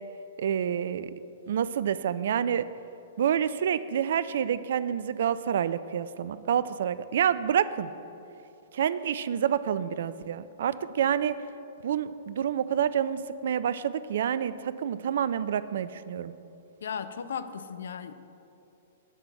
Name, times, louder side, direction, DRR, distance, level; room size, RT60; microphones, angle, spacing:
voice 1, 0.4-1.1 1.5-2.6 3.2-7.9 8.7-11.4 11.8-16.3, right 9 dB, 55° right, 15 dB, 0.3 m, -28 dB
voice 2, 16.8-18.1, left 7 dB, 60° left, 11 dB, 0.5 m, -36 dB
9.0 x 5.7 x 7.9 m, 2.8 s
figure-of-eight pair, 105°, 0 cm